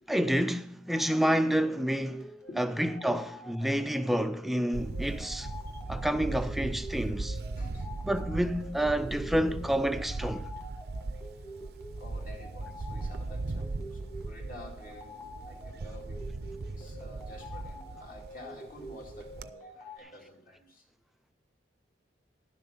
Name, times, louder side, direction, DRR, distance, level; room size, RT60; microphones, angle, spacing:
voice 1, 0.1-2.3 2.6-5.5 5.9-7.4 8.0-10.5, equal, ahead, 0.3 m, -29 dB
sound 1, 0.9-20.0, equal, 15° left, 1.6 m, -47 dB
voice 2, 2.5-3.4 7.6-8.0 11.3-11.4 12.0-16.2 16.7-20.8, left 1 dB, 50° left, 2.3 m, -50 dB
Camera, 4.7-19.5, right 3 dB, 55° right, 0.5 m, -38 dB
11.5 x 7.1 x 5.5 m
head